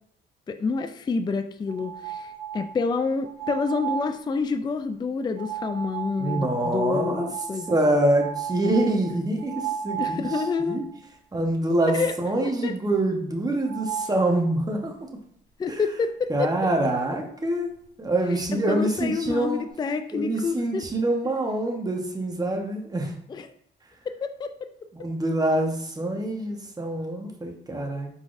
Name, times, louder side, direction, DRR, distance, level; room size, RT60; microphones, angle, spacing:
voice 1, 0.5-7.7 10.0-10.8 11.9-12.1 12.6-12.7 15.6-16.6 18.5-20.9 23.3-23.5 24.1-24.7, left 4 dB, 20° left, 8 dB, 0.3 m, -28 dB
sound 1, 1.7-2.8 3.2-4.2 5.4-11.0 11.4-11.5 11.9-12.0 13.6-14.2 16.4-16.5 16.8-17.2, right 8 dB, 85° right, 0.8 m, -34 dB
voice 2, 6.2-7.3 7.7-10.2 10.6-10.8 11.3-14.9 15.7-15.8 16.3-17.7 18.0-19.6 20.1-23.1 24.9-28.1, right 1 dB, 20° right, 2 dB, 1.0 m, -25 dB
4.6 x 3.9 x 2.5 m, 0.67 s
cardioid pair, 90°, 20 cm